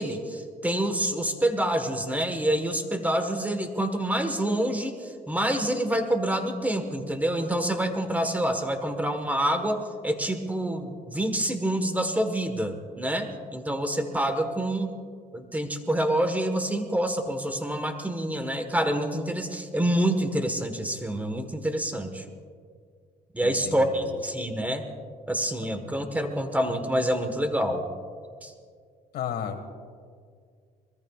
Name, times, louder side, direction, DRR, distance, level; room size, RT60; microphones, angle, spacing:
voice 1, 0.0-14.9 15.3-22.2 23.3-24.9 25.3-27.9 28.4-28.5, right 1 dB, 10° right, 7 dB, 1.4 m, -27 dB
voice 2, 23.4-24.2 29.1-29.7, left 8 dB, 70° left, 7 dB, 1.8 m, -34 dB
24.0 x 21.5 x 2.4 m, 2.1 s
cardioid pair, 110°, 17 cm